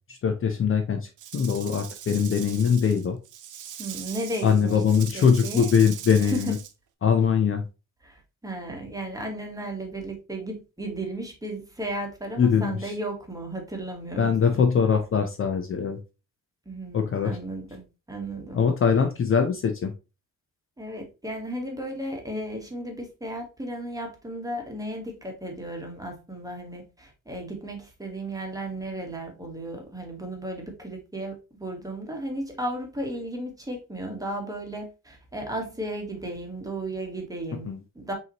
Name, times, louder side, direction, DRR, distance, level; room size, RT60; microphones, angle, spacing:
voice 1, 0.1-3.2 4.4-6.6 7.0-7.7 12.4-12.9 14.2-16.0 16.9-17.4 18.5-19.9 37.7-37.8, left 6 dB, 40° left, 5 dB, 0.6 m, -22 dB
Rattle / Rattle (instrument), 1.2-6.7, right 10 dB, 65° right, 0.6 m, -41 dB
voice 2, 3.8-5.7 6.2-6.5 8.0-14.6 16.7-18.6 20.8-31.3 31.6-37.7 37.9-38.1, right 1 dB, 10° right, 2 dB, 1.2 m, -34 dB
5.5 x 2.9 x 2.8 m, 0.29 s
cardioid pair, 130°, 33 cm